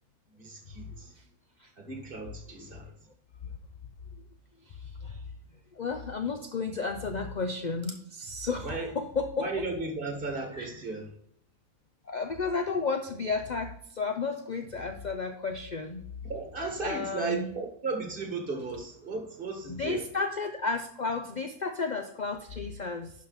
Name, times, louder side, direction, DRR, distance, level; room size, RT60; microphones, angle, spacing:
voice 1, 0.4-1.1 1.8-2.9 8.6-8.9 9.4-11.1 16.2-20.0, right 3 dB, 35° right, 2 dB, 1.9 m, -35 dB
voice 2, 4.6-5.2 5.7-9.5 10.5-10.7 12.1-16.1 16.8-17.5 19.7-23.1, left 4 dB, 60° left, 5 dB, 0.4 m, -33 dB
11.5 x 5.2 x 4.1 m, 0.65 s
omnidirectional pair, 1.7 m